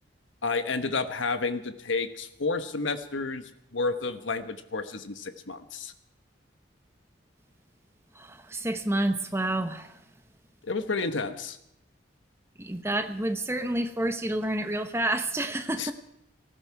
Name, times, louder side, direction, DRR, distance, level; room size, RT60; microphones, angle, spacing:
voice 1, 0.4-3.4 3.7-5.9 10.6-11.6 15.8-15.9, left 3 dB, 80° left, 9 dB, 1.2 m, -30 dB
voice 2, 8.1-10.0 12.6-15.9, right 1 dB, 15° right, 8 dB, 1.0 m, -29 dB
18.5 x 14.5 x 4.7 m, 0.82 s
head